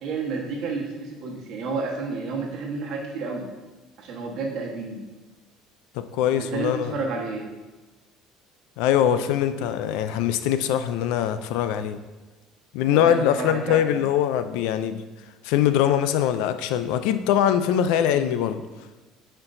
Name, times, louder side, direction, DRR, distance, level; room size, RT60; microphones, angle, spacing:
voice 1, 0.0-3.5 4.0-5.0 6.3-7.5 12.8-14.0 18.1-18.3 18.7-18.8, right 4 dB, 50° right, -1 dB, 1.3 m, -31 dB
voice 2, 6.1-7.0 8.8-12.0 12.7-15.0 15.4-18.6, left 10 dB, 75° left, 10 dB, 0.4 m, -22 dB
9.5 x 4.4 x 2.6 m, 1.2 s
cardioid pair, 170°, 0 cm